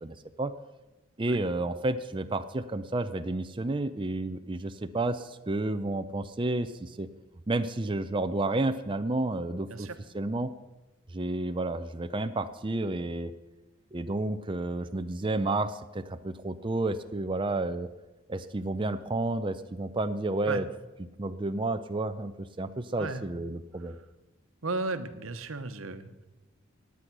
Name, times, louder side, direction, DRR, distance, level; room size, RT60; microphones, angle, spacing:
voice 1, 0.0-0.5 1.2-7.1 7.5-9.9 10.1-10.5 11.1-13.3 13.9-17.9 18.3-20.7 21.2-24.0, right 2 dB, 25° right, 9 dB, 0.5 m, -31 dB
voice 2, 24.6-26.3, right 3 dB, 85° right, 11 dB, 1.1 m, -35 dB
16.5 x 9.9 x 6.1 m, 1.0 s
head